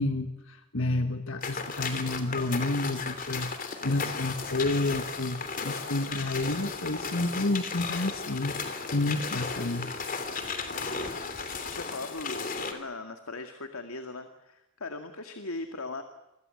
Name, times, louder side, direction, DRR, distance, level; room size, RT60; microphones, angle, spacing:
voice 1, 0.0-8.6 8.9-9.9, left 2 dB, 65° left, 7 dB, 1.6 m, -30 dB
sound 1, 1.4-12.7, left 4 dB, 40° left, 3.2 m, -35 dB
voice 2, 3.8-4.1 10.8-16.0, left 3 dB, 85° left, 6 dB, 2.2 m, -40 dB
29.0 x 23.0 x 7.9 m, 0.93 s
head